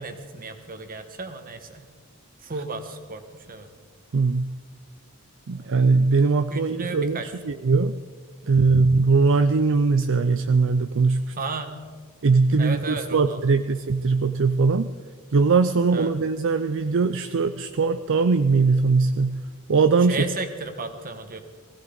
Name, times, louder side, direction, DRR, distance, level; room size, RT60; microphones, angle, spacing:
voice 1, 0.0-1.9 2.4-3.7 5.5-5.7 6.5-7.3 8.4-8.5 11.4-11.7 12.6-13.4 15.9-16.1 20.1-21.4, right 3 dB, 40° right, 7 dB, 1.4 m, -34 dB
voice 2, 4.1-4.5 5.5-7.2 7.4-7.9 8.5-11.3 12.2-14.9 15.3-19.4 19.7-20.2, right 4 dB, 60° right, 10 dB, 0.5 m, -20 dB
19.5 x 16.0 x 4.0 m, 1.6 s
head